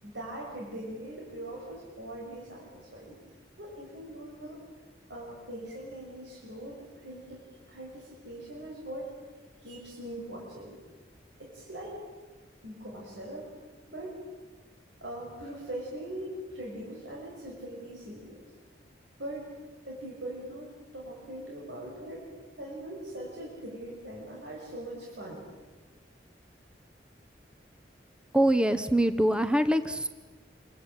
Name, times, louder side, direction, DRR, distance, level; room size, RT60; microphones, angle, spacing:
voice 1, 0.0-3.2 3.6-4.6 5.1-9.1 9.6-10.8 11.4-12.0 12.6-13.5 13.9-14.1 15.0-18.4 19.2-19.5 19.8-22.3 22.6-25.5, right 1 dB, 90° right, -3 dB, 6.3 m, -41 dB
voice 2, 28.3-30.1, right 1 dB, 5° right, 10 dB, 0.9 m, -24 dB
27.5 x 23.5 x 9.0 m, 1.3 s
head